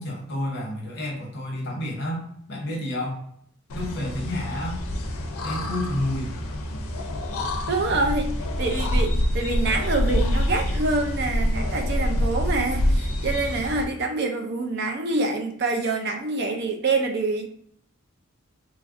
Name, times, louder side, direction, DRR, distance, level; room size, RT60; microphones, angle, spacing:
voice 1, 0.0-3.2 3.7-4.8 5.4-6.3, left 1 dB, 50° left, -1 dB, 0.8 m, -30 dB
sound 1, 3.7-13.8, left 1 dB, 80° left, 0.5 m, -26 dB
voice 2, 7.7-8.3 8.6-17.5, right 3 dB, 50° right, 4 dB, 0.4 m, -26 dB
3.1 x 2.4 x 2.5 m, 0.66 s
head